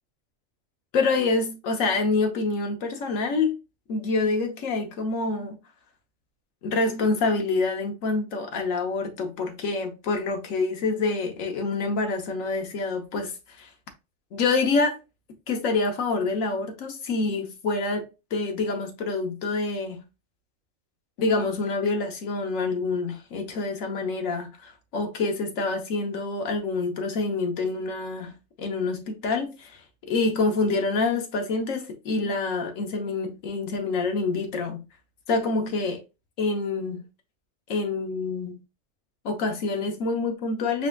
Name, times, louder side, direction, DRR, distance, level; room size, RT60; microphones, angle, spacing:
voice 1, 0.9-3.6 3.9-5.6 6.6-13.7 14.3-15.0 15.5-18.1 18.3-20.0 21.2-29.8 30.1-34.8 35.3-36.0 36.4-37.0 37.7-38.6 39.2-40.9, left 3 dB, 80° left, 1.3 m, -27 dB
4.8 x 3.5 x 2.3 m
omnidirectional pair, 1.4 m